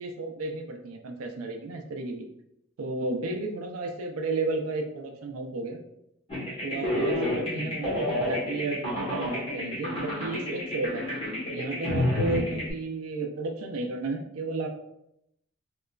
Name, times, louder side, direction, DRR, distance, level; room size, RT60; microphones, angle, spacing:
voice 1, 0.0-2.3 2.8-5.8 6.6-11.0 11.5-14.7, right 3 dB, 80° right, 3 dB, 0.4 m, -33 dB
sound 1, 6.3-12.7, left 1 dB, 30° left, 1.1 m, -29 dB
2.9 x 2.3 x 2.3 m, 0.80 s
head